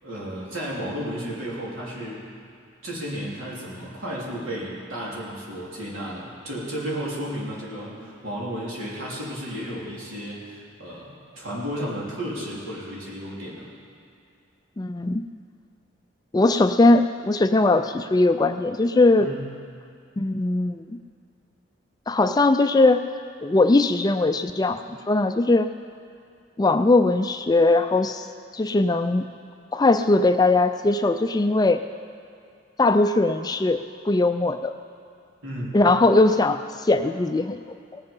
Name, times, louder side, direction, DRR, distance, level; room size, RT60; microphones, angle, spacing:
voice 1, 0.0-2.2 2.8-13.7 19.2-19.4 35.4-35.8, equal, 85° right, -5 dB, 3.4 m, -33 dB
voice 2, 14.8-15.3 16.3-19.3 20.2-21.0 22.1-23.0 23.4-25.7 26.6-28.3 28.5-29.2 29.7-31.8 32.8-33.8 34.0-34.7 35.7-37.6 37.9-38.0, left 2 dB, 20° left, 9 dB, 0.3 m, -20 dB
18.5 x 8.0 x 5.4 m, 2.5 s
head